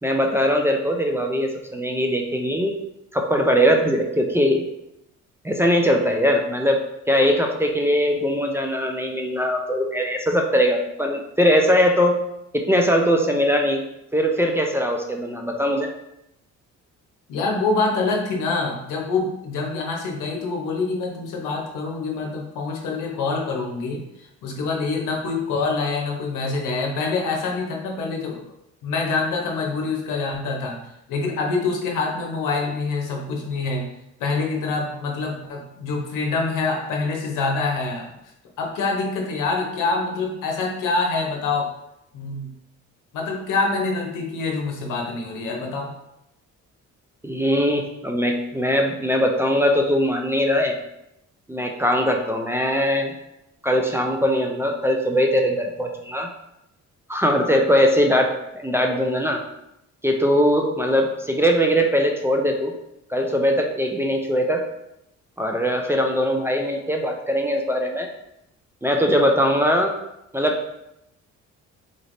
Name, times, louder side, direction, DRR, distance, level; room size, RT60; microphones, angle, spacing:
voice 1, 0.0-2.8 3.1-4.6 5.4-6.8 7.1-12.2 12.5-13.8 14.1-15.9 47.2-50.7 51.5-53.1 53.6-56.3 57.1-59.4 60.0-62.7 63.1-64.6 65.4-68.1 68.8-69.9 70.3-70.6, equal, 10° right, 2 dB, 0.4 m, -21 dB
voice 2, 17.3-28.4 28.8-30.8 31.1-33.9 34.2-38.1 38.6-41.7 42.1-42.5 43.1-45.9, left 3 dB, 90° left, 0 dB, 0.9 m, -25 dB
3.8 x 3.2 x 2.6 m, 0.84 s
cardioid pair, 105°, 30 cm